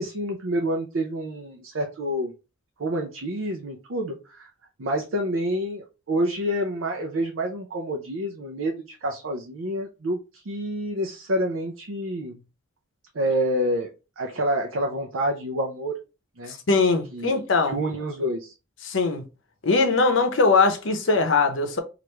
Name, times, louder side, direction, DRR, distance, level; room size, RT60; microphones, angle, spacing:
voice 1, 0.0-2.3 2.8-4.5 4.8-12.4 13.1-13.9 14.2-15.9 16.4-16.6 17.1-17.3 17.7-18.5, equal, 70° right, 0.5 m, -28 dB
voice 2, 16.5-17.8 18.8-19.2 19.6-21.8, left 4 dB, 65° left, 0.7 m, -21 dB
3.1 x 2.5 x 3.2 m
head